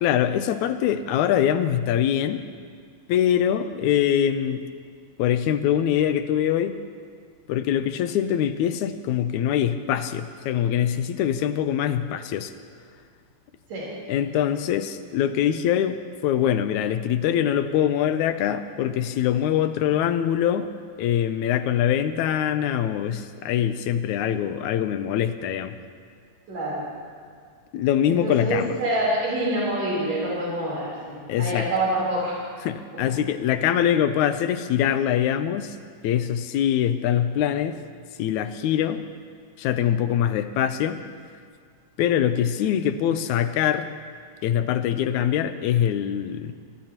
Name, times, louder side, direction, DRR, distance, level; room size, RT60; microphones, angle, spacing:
voice 1, 0.0-2.4 3.1-4.6 5.2-6.8 7.5-12.5 14.1-20.7 21.0-25.8 27.7-28.7 31.3-31.7 32.6-35.8 36.0-37.8 38.2-39.0 39.6-41.0 42.0-43.9 44.4-46.5, left 10 dB, 90° left, 10 dB, 2.1 m, -23 dB
voice 2, 26.5-26.8 28.1-32.4 32.9-33.1, right 1 dB, 65° right, -6 dB, 5.2 m, -26 dB
24.5 x 19.0 x 3.0 m, 2.1 s
omnidirectional pair, 3.3 m